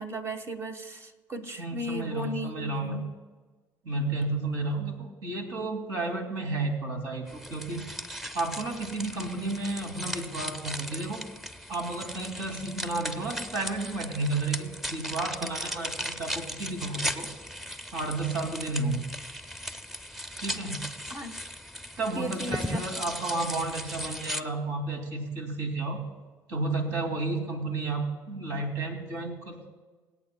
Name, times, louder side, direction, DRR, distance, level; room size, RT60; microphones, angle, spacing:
voice 1, 0.0-3.0 21.1-21.3 22.1-22.8, right 1 dB, 40° right, 5 dB, 1.4 m, -36 dB
voice 2, 1.6-3.1 3.8-7.9 8.3-11.2 11.7-17.3 17.9-19.1 20.4-20.9 22.0-26.0 26.5-29.7, right 2 dB, 75° right, 2 dB, 2.7 m, -32 dB
sound 1, 7.3-24.4, equal, 5° right, 0.7 m, -37 dB
24.5 x 8.7 x 2.3 m, 1.3 s
supercardioid pair, 90°, 7 cm